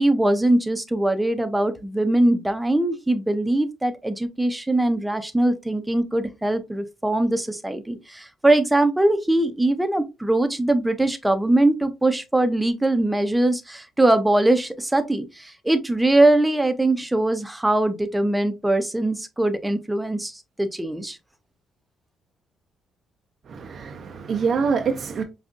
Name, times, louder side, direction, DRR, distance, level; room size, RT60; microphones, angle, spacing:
voice 1, 0.0-21.2, right 1 dB, 10° right, 0.6 m, -21 dB
voice 2, 23.5-25.2, right 5 dB, 55° right, 0.5 m, -25 dB
5.1 x 2.4 x 2.4 m
cardioid pair, 90°, 0 cm